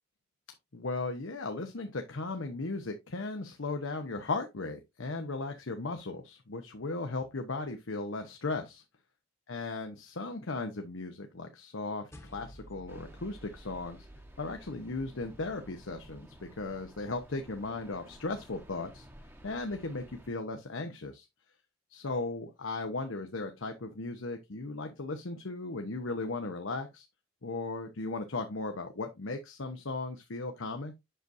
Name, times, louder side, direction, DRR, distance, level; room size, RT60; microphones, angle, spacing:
voice 1, 0.7-8.8 9.5-14.0 14.4-19.1 19.4-21.3 21.9-27.0 27.4-30.9, left 3 dB, 85° left, 0.9 m, -36 dB
sound 1, 12.1-16.7, right 1 dB, 15° left, 1.1 m, -53 dB
sound 2, 12.9-20.3, equal, 10° right, 1.0 m, -54 dB
7.9 x 6.2 x 2.6 m
head